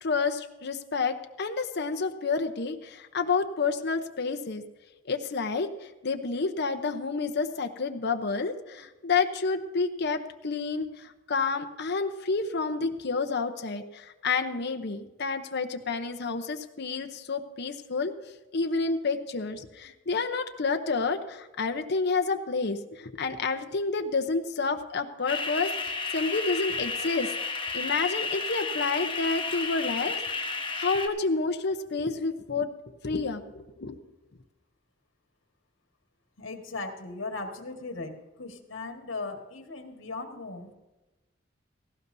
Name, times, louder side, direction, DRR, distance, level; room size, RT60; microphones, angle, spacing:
voice 1, 0.0-4.6 5.1-27.3 27.7-32.7 33.0-34.0, left 4 dB, 60° left, 6 dB, 0.8 m, -29 dB
sound 1, 25.3-31.1, left 4 dB, 25° left, 1.1 m, -32 dB
voice 2, 36.4-40.7, left 3 dB, 80° left, 4 dB, 1.6 m, -38 dB
18.0 x 15.5 x 2.7 m, 1.1 s
head